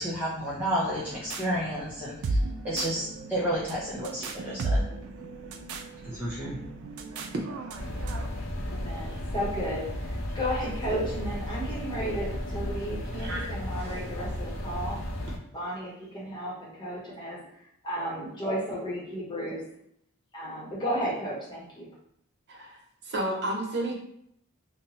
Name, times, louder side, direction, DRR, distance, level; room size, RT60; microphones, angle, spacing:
voice 1, 0.0-2.4 2.6-4.9 6.0-6.6, equal, 10° right, -9 dB, 0.6 m, -31 dB
sound 1, 0.8-8.3, right 2 dB, 85° right, 0.4 m, -35 dB
sound 2, 7.8-15.4, left 1 dB, 70° left, 0.7 m, -34 dB
voice 2, 8.3-15.0 15.5-17.4 17.8-19.6 20.3-21.9, equal, 20° left, -5 dB, 1.0 m, -33 dB
voice 3, 22.5-23.9, right 1 dB, 55° right, -1 dB, 0.7 m, -32 dB
2.7 x 2.2 x 4.1 m, 0.73 s
head